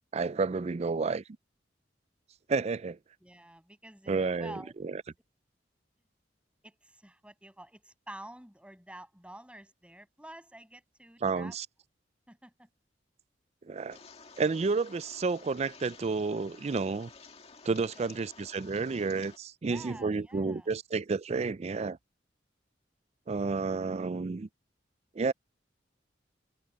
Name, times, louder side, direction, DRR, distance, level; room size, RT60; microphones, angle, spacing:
voice 1, 0.1-1.2 2.5-3.0 4.1-5.0 11.2-11.7 13.7-14.0 14.4-17.1 17.6-22.0 23.3-24.5 25.2-25.3, right 4 dB, 35° right, 0.4 m, -31 dB
voice 2, 3.2-4.9 6.6-11.6 12.3-12.7 17.9-18.3 19.7-20.7, right 1 dB, 5° right, 7.1 m, -49 dB
sound 1, 13.9-19.4, left 4 dB, 35° left, 2.1 m, -53 dB
head